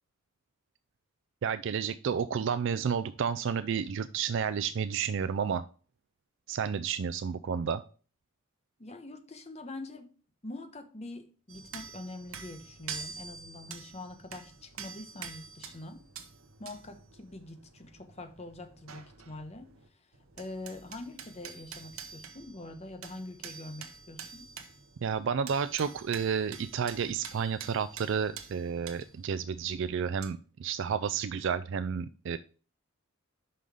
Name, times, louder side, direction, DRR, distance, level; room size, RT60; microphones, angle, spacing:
voice 1, 1.4-5.6 6.5-7.8 25.0-32.4, right 7 dB, 60° right, 11 dB, 0.3 m, -31 dB
voice 2, 8.8-10.1 10.4-16.0 16.6-24.4, left 2 dB, 30° left, 7 dB, 1.0 m, -44 dB
sound 1, 11.5-19.9 20.1-30.3, right 6 dB, 80° right, 1.0 m, -47 dB
5.7 x 5.4 x 4.8 m, 0.38 s
head